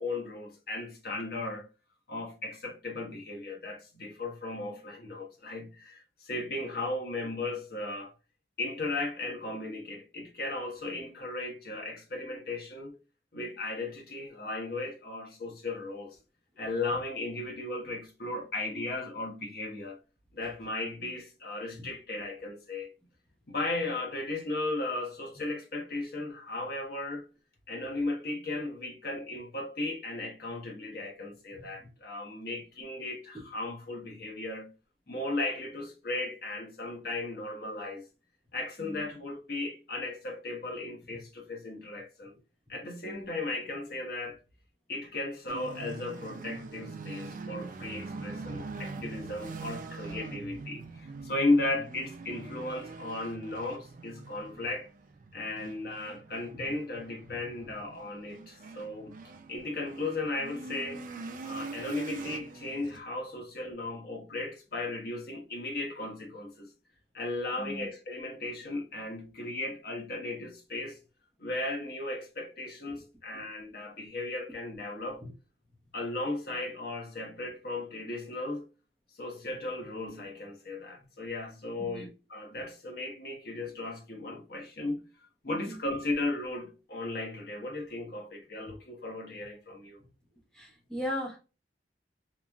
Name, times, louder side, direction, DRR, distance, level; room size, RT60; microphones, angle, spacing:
voice 1, 0.0-1.7 2.1-8.1 8.6-13.0 13.3-16.2 16.6-20.0 20.3-22.9 23.5-27.2 27.7-34.7 35.1-38.0 38.5-42.3 42.7-44.4 44.9-54.9 55.3-59.1 59.5-61.0 61.4-66.7 67.1-71.0 71.4-75.2 75.9-78.7 79.2-85.0 85.4-90.0, left 2 dB, 55° left, 0.9 m, -36 dB
voice 2, 31.5-31.9 33.3-33.5 38.8-39.1 41.1-41.2 42.7-42.8 43.0-43.3 56.5-56.7 57.2-57.4 61.4-61.6 67.6-67.9 72.9-73.0 73.3-73.5 75.2-75.3 81.0-81.1 81.8-82.1 85.5-85.8 90.0-90.1 90.5-91.4, left 1 dB, 5° left, 0.7 m, -40 dB
sound 1, 45.5-63.0, right 3 dB, 45° right, 0.4 m, -43 dB
3.0 x 2.4 x 2.2 m
head